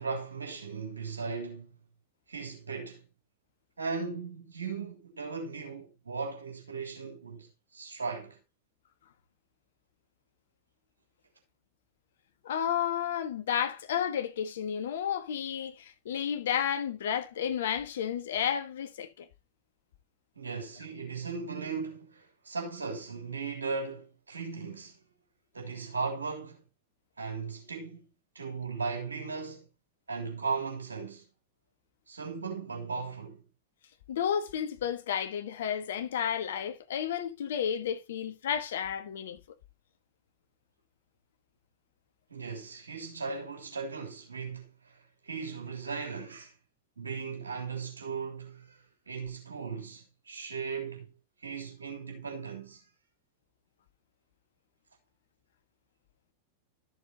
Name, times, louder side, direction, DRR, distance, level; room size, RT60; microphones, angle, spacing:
voice 1, 0.0-1.8 2.3-3.0 3.8-8.4 20.3-25.0 25.5-26.6 27.2-28.1 28.3-29.7 30.1-31.2 32.1-33.4 42.3-46.5 47.0-51.1 51.4-52.8, right 5 dB, 75° right, 3.2 m, -37 dB
voice 2, 12.4-19.3 34.1-39.4, left 8 dB, 60° left, 1.4 m, -32 dB
13.0 x 6.9 x 2.9 m
figure-of-eight pair, 90°, 0 cm